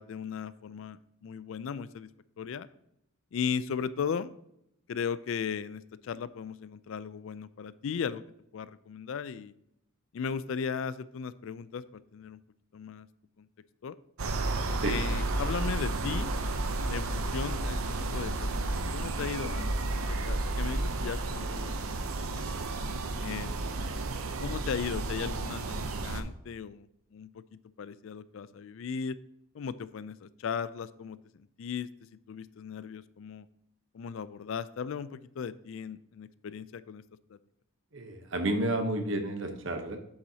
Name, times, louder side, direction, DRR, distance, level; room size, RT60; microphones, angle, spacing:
voice 1, 0.0-2.1 2.4-2.7 3.3-4.3 4.9-8.2 8.5-9.5 10.1-12.4 12.7-13.1 13.4-13.5 13.8-14.0 14.8-16.3 16.9-19.7 20.1-21.7 22.2-22.5 23.2-23.6 24.4-29.2 29.5-33.5 33.9-37.0 37.3-37.4, left 6 dB, 65° left, 16 dB, 0.3 m, -37 dB
sound 1, 14.2-26.2, right 2 dB, 85° right, 0.7 m, -32 dB
voice 2, 37.9-40.0, right 1 dB, 60° right, 6 dB, 1.0 m, -31 dB
7.8 x 6.9 x 2.8 m, 0.78 s
head